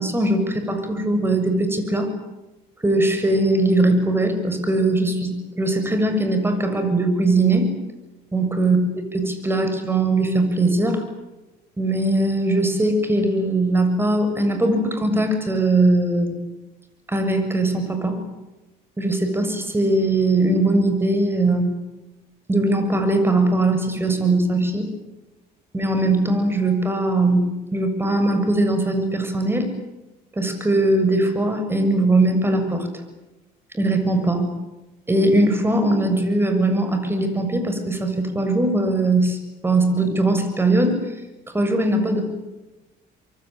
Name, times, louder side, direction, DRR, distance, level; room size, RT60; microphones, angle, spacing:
voice 1, 0.0-2.1 2.8-7.7 8.3-8.8 9.1-11.0 11.8-16.4 17.1-18.2 19.0-21.7 22.5-24.9 25.7-29.7 30.4-32.9 33.7-34.5 35.1-39.4 39.6-41.0 41.5-42.2, right 2 dB, 15° right, 7 dB, 7.1 m, -20 dB
26.0 x 23.5 x 9.2 m, 1.0 s
cardioid pair, 110°, 17 cm